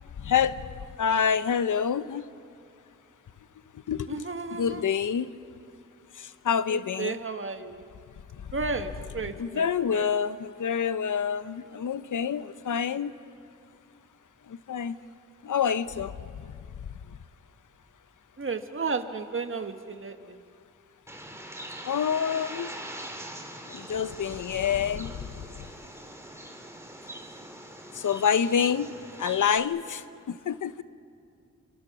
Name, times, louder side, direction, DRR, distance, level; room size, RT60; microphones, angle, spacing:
voice 1, 0.2-0.6 1.0-2.2 3.9-4.2 4.5-5.3 6.4-7.2 9.3-13.1 14.7-14.9 15.4-16.1 21.8-22.7 23.7-25.1 28.0-28.9 29.2-30.0 30.3-30.8, left 7 dB, 75° left, 13 dB, 0.9 m, -27 dB
voice 2, 4.1-4.8 6.7-7.8 8.5-10.1 18.4-20.4, right 4 dB, 40° right, 7 dB, 1.7 m, -33 dB
Bird, 21.1-29.6, right 1 dB, 10° right, 3.7 m, -42 dB
29.5 x 26.0 x 6.2 m, 2.4 s
cardioid pair, 55°, 31 cm